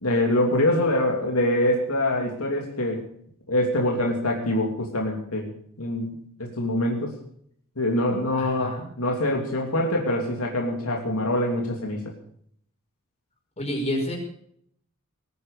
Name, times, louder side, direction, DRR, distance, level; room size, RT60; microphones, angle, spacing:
voice 1, 0.0-3.0 3.5-5.5 5.8-7.1 7.8-12.0, left 1 dB, 75° left, 0 dB, 3.0 m, -24 dB
voice 2, 8.4-8.8 13.6-14.2, left 1 dB, 30° left, 1 dB, 5.7 m, -29 dB
20.0 x 9.7 x 6.6 m, 0.65 s
head